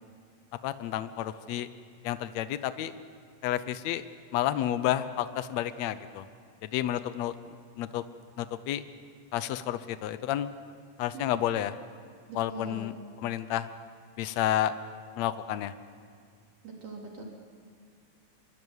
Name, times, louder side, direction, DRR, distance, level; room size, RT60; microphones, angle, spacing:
voice 1, 0.6-1.7 2.0-2.9 3.4-4.0 4.3-6.2 6.6-7.3 7.8-8.0 8.4-8.8 9.3-10.5 11.0-11.7 12.3-12.9 13.2-13.7 14.2-14.7 15.2-15.7, left 12 dB, 85° left, 12 dB, 1.5 m, -30 dB
voice 2, 12.3-12.9 16.6-17.2, right 4 dB, 60° right, 0 dB, 4.6 m, -42 dB
25.0 x 23.5 x 8.1 m, 2.2 s
omnidirectional pair, 4.2 m